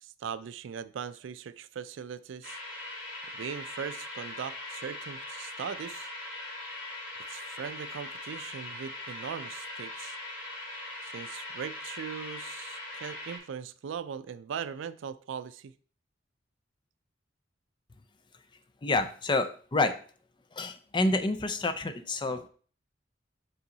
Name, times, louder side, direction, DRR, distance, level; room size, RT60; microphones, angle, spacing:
voice 1, 0.0-2.6 3.3-6.1 7.3-10.2 11.0-15.7, right 7 dB, 70° right, 15 dB, 0.4 m, -40 dB
sound 1, 2.4-13.4, left 2 dB, 75° left, 2.9 m, -41 dB
voice 2, 18.8-19.9 20.5-22.5, left 2 dB, 25° left, 9 dB, 0.5 m, -28 dB
5.6 x 5.4 x 3.9 m, 0.43 s
head